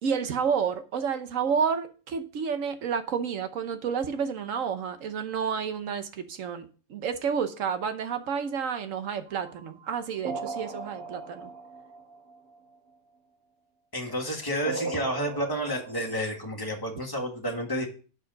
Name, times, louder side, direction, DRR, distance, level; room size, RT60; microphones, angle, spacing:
voice 1, 0.0-11.5, right 6 dB, 65° right, 9 dB, 1.2 m, -30 dB
sound 1, 9.3-12.6 14.7-16.4, right 4 dB, 85° right, 1.5 m, -38 dB
voice 2, 13.9-17.9, equal, 15° left, 0 dB, 1.7 m, -30 dB
6.6 x 4.9 x 6.3 m, 0.38 s
omnidirectional pair, 1.5 m